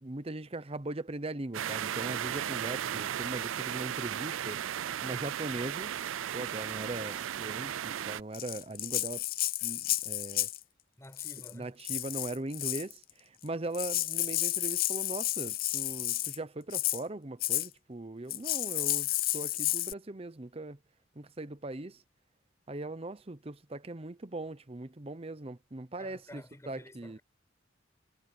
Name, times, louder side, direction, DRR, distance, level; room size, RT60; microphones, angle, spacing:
voice 1, 0.0-4.6 5.0-5.9 6.3-9.2 9.6-10.5 11.5-20.8 21.2-22.0 22.7-27.2, right 2 dB, 30° right, 0.8 m, -40 dB
sound 1, 1.5-8.2, right 10 dB, 90° right, 0.4 m, -35 dB
Rattle (instrument), 8.3-10.6 11.1-11.5 11.8-12.9 13.5-13.6 13.7-16.4 16.7-17.0 17.4-17.7 18.3-19.9, left 15 dB, 50° left, 0.6 m, -32 dB
voice 2, 11.0-11.8 26.0-27.2, left 1 dB, 15° left, 5.9 m, -51 dB
head